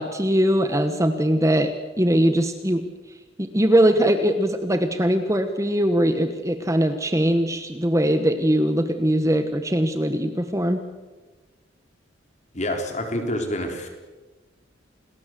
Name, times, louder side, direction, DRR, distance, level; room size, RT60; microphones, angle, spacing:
voice 1, 0.0-2.8 3.4-10.9, equal, 15° right, 8 dB, 1.2 m, -21 dB
voice 2, 12.5-13.9, left 1 dB, 35° left, 4 dB, 4.0 m, -27 dB
29.0 x 20.0 x 7.7 m, 1.2 s
head